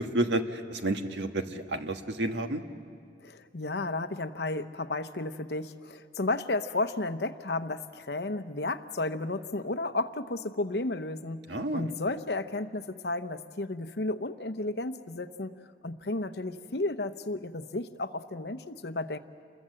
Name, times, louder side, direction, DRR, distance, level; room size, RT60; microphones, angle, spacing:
voice 1, 0.0-2.6 11.5-11.9, right 1 dB, 85° right, 6 dB, 1.5 m, -30 dB
voice 2, 3.2-15.6 15.8-19.2, left 2 dB, 65° left, 10 dB, 0.9 m, -33 dB
29.0 x 22.0 x 7.7 m, 2.4 s
head